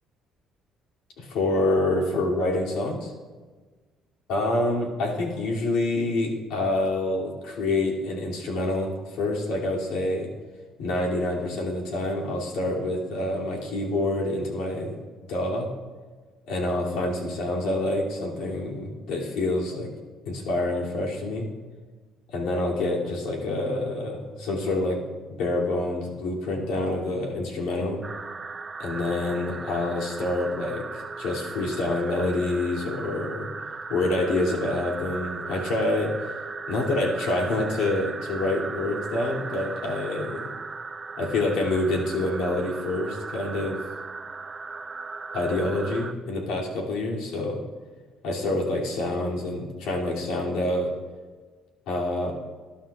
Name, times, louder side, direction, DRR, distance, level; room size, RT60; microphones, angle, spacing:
voice 1, 1.2-3.1 4.3-10.3 10.8-15.0 15.3-15.7 16.5-19.9 20.2-21.5 22.3-25.0 25.4-28.0 28.8-33.5 33.9-36.1 36.7-40.5 41.2-43.8 45.3-47.6 48.2-50.9 51.9-52.3, left 2 dB, 85° left, -2 dB, 2.8 m, -27 dB
sound 1, 28.0-46.1, right 4 dB, 25° right, 0.6 m, -37 dB
20.0 x 11.5 x 2.4 m, 1.4 s
cardioid pair, 125°, 0 cm